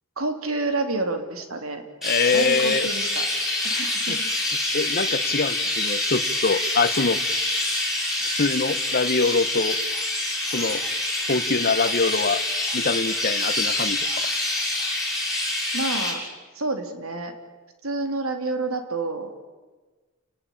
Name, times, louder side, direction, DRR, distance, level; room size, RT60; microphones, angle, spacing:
voice 1, 0.2-1.8 2.3-3.3 3.6-4.2 15.7-16.2 16.5-17.3 17.8-19.3, right 2 dB, 85° right, 6 dB, 3.2 m, -28 dB
voice 2, 2.0-2.9 4.1-4.2 4.7-7.2 8.4-9.8 10.5-10.8 11.3-12.4 12.7-14.1, left 4 dB, 45° left, 14 dB, 1.0 m, -24 dB
Chirp tweet, 2.0-16.1, left 2 dB, ahead, 7.0 m, -26 dB
29.5 x 19.5 x 8.6 m, 1.3 s
head